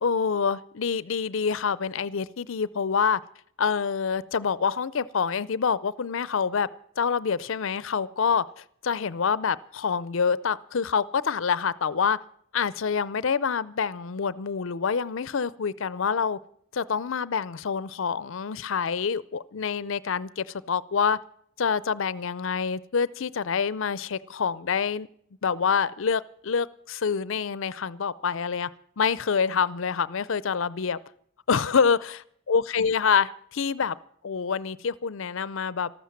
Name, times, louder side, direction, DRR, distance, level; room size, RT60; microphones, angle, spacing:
voice 1, 0.0-3.2 3.6-6.7 7.0-8.4 8.8-12.2 12.5-16.4 16.7-21.2 21.6-25.1 25.4-28.7 29.0-31.0 31.5-32.2 32.5-34.0 34.2-35.9, left 6 dB, 60° left, 19 dB, 0.5 m, -26 dB
13.5 x 13.0 x 7.2 m, 0.65 s
head